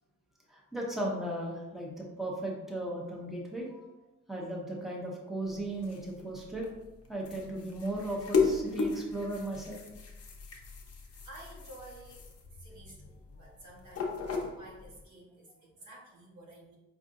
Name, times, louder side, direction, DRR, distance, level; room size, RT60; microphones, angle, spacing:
voice 1, 0.5-3.8 4.3-6.7 7.1-9.8, right 1 dB, ahead, -2 dB, 0.8 m, -36 dB
toilet brush, 5.5-15.0, left 4 dB, 55° left, 0.7 m, -36 dB
voice 2, 11.0-16.8, right 1 dB, 80° right, -4 dB, 1.2 m, -52 dB
4.8 x 2.5 x 2.5 m, 1.0 s
cardioid pair, 90°, 29 cm